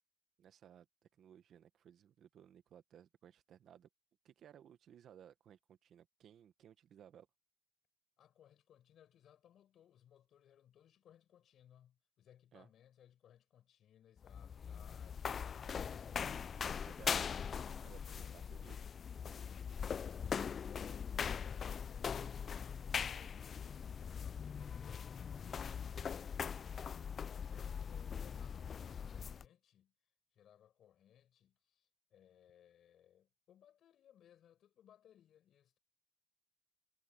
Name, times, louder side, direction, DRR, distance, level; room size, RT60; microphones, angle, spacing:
voice 1, 0.4-0.9 1.2-3.9 4.2-7.3 12.5-12.7 16.8-17.2 17.8-18.8, right 9 dB, 70° right, 1.4 m, -60 dB
voice 2, 8.2-17.6 18.2-18.4 20.2-25.1 25.5-29.9 30.3-35.8, left 10 dB, 70° left, 6.5 m, -65 dB
sound 1, 14.2-29.5, left 7 dB, 50° left, 0.3 m, -41 dB
cardioid pair, 90°, 0 cm